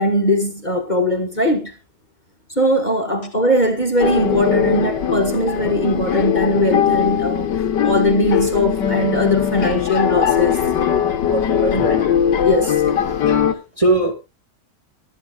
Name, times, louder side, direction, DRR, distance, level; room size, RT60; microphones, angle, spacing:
voice 1, 0.0-1.7 2.6-7.5 7.8-11.8 12.4-12.8, left 1 dB, 25° left, 1.8 m, -20 dB
sound 1, 4.0-13.5, left 8 dB, 90° left, 1.8 m, -20 dB
voice 2, 13.5-14.1, right 2 dB, 20° right, 1.7 m, -19 dB
23.5 x 9.6 x 2.4 m
omnidirectional pair, 1.8 m